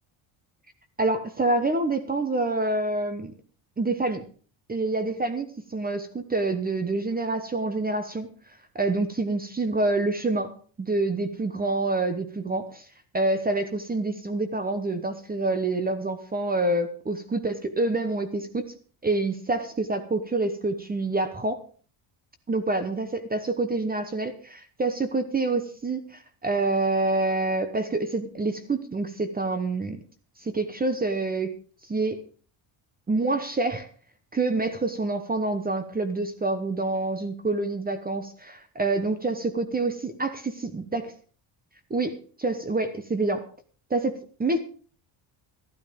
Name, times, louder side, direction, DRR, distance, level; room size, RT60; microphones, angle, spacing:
voice 1, 1.0-3.3 3.8-4.2 4.7-8.3 8.7-12.8 13.1-18.7 19.0-21.6 22.5-30.0 30.4-31.5 31.9-32.2 33.1-33.9 34.3-40.4 40.7-41.0 41.9-43.4 43.9-44.6, right 2 dB, 20° right, 10 dB, 1.0 m, -27 dB
12.5 x 12.5 x 5.1 m, 0.41 s
cardioid pair, 150°, 49 cm